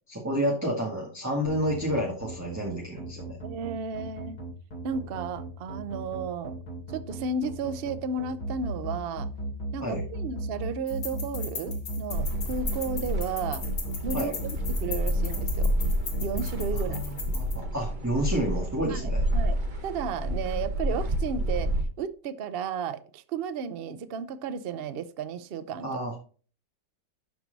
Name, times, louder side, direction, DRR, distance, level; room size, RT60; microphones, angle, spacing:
voice 1, 0.1-3.4 9.8-10.0 14.1-14.3 16.7-19.2 25.8-26.2, equal, 10° right, -2 dB, 1.8 m, -30 dB
sound 1, 1.4-17.0, right 2 dB, 65° left, 3.7 m, -35 dB
voice 2, 3.4-4.4 4.8-6.6 6.9-9.3 9.7-13.7 14.0-15.7 16.2-17.0 18.9-21.7 22.0-25.9, right 5 dB, 75° right, 13 dB, 0.5 m, -33 dB
sound 2, 10.9-17.5, left 5 dB, 80° left, 2.5 m, -38 dB
sound 3, 12.1-21.8, equal, 30° right, 1.2 m, -29 dB
12.0 x 4.6 x 4.0 m, 0.40 s
omnidirectional pair, 1.9 m